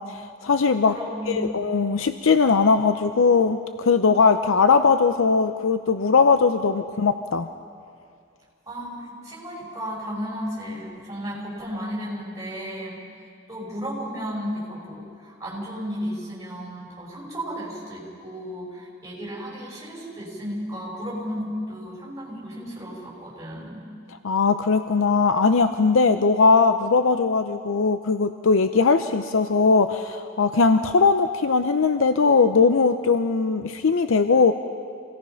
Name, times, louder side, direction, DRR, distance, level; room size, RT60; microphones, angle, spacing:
voice 1, 0.0-1.0 1.3-7.5 24.2-34.5, left 4 dB, 75° left, 9 dB, 0.6 m, -20 dB
voice 2, 0.9-1.4 8.7-13.0 13.5-23.8, equal, 15° right, -4 dB, 5.5 m, -34 dB
26.0 x 18.0 x 5.8 m, 2.2 s
head